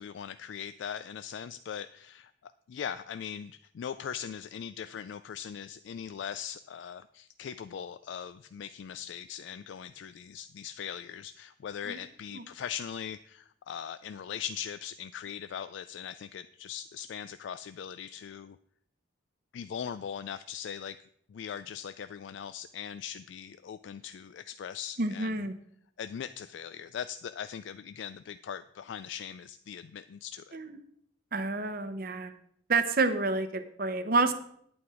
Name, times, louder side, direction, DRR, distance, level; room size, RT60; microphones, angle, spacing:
voice 1, 0.0-18.6 19.5-21.0 21.3-25.5 26.0-30.6, left 8 dB, 65° left, 12 dB, 0.3 m, -40 dB
voice 2, 25.0-25.5 30.5-30.8 31.3-32.3 32.7-34.3, right 3 dB, 45° right, 11 dB, 0.8 m, -29 dB
9.4 x 8.6 x 4.9 m, 0.67 s
head